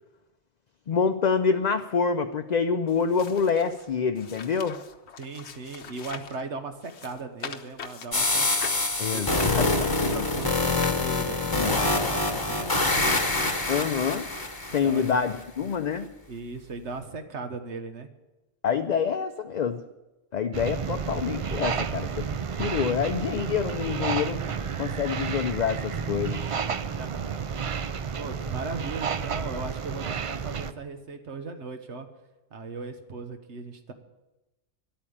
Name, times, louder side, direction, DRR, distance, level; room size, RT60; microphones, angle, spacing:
voice 1, 0.9-4.8 9.0-9.7 10.0-10.2 11.5-11.8 13.7-14.3 14.7-16.1 18.6-19.8 20.3-22.3 22.5-24.4 24.8-26.4, left 6 dB, 50° left, 7 dB, 0.6 m, -26 dB
sound 1, 2.9-6.4 6.8-11.4 12.1-12.2, left 6 dB, 75° left, 1.1 m, -43 dB
voice 2, 5.2-8.5 9.1-13.7 14.8-15.2 16.3-18.1 27.0-27.5 27.8-32.1 32.5-33.9, right 3 dB, 85° right, 7 dB, 1.5 m, -38 dB
sound 2, 8.1-15.1, left 2 dB, 20° left, 1.0 m, -26 dB
sound 3, 20.5-30.7, right 6 dB, 50° right, 0.4 m, -31 dB
11.5 x 8.8 x 8.7 m, 1.0 s
omnidirectional pair, 1.1 m